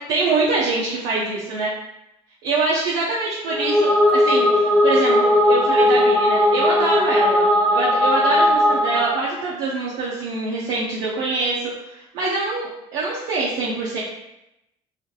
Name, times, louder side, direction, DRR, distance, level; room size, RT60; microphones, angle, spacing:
voice 1, 0.1-1.7 2.4-7.5 7.7-14.0, right 3 dB, 70° right, -6 dB, 0.6 m, -24 dB
sound 1, 3.5-9.2, left 1 dB, 10° left, 0.9 m, -17 dB
2.6 x 2.5 x 2.3 m, 0.88 s
supercardioid pair, 80°, 16 cm